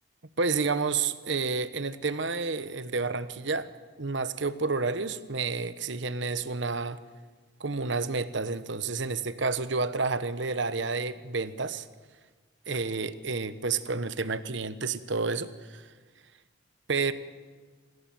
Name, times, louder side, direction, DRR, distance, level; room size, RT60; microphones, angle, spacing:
voice 1, 0.4-3.7 4.0-7.0 7.6-11.9 12.7-15.9 16.9-17.1, right 4 dB, 70° right, 12 dB, 1.0 m, -30 dB
25.5 x 16.0 x 7.7 m, 1.4 s
head